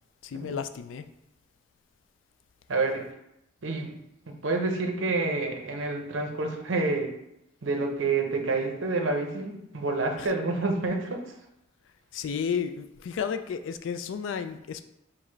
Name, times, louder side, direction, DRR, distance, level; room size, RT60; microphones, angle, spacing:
voice 1, 0.2-1.1 10.2-10.3 12.1-14.8, left 7 dB, 75° left, 10 dB, 0.3 m, -32 dB
voice 2, 2.7-3.0 3.6-3.9 4.3-7.1 7.6-11.3, right 3 dB, 80° right, 3 dB, 0.7 m, -28 dB
4.7 x 2.1 x 4.4 m, 0.83 s
head